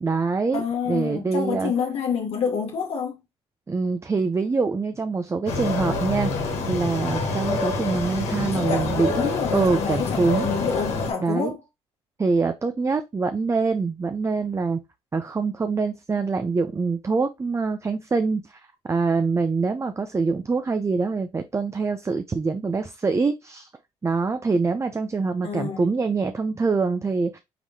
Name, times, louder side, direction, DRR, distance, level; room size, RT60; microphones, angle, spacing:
voice 1, 0.0-0.6 0.9-1.7 3.7-6.3 6.7-9.1 9.5-10.5 11.2-11.5 12.2-14.8 15.1-18.6 18.9-23.7 24.0-27.4, right 4 dB, 25° right, 0.5 m, -24 dB
voice 2, 0.5-3.2 8.5-11.6 25.4-25.8, left 6 dB, 70° left, 1.0 m, -28 dB
sound 1, 5.5-11.1, left 3 dB, 85° left, 1.3 m, -27 dB
4.8 x 3.6 x 2.7 m
supercardioid pair, 70°, 11 cm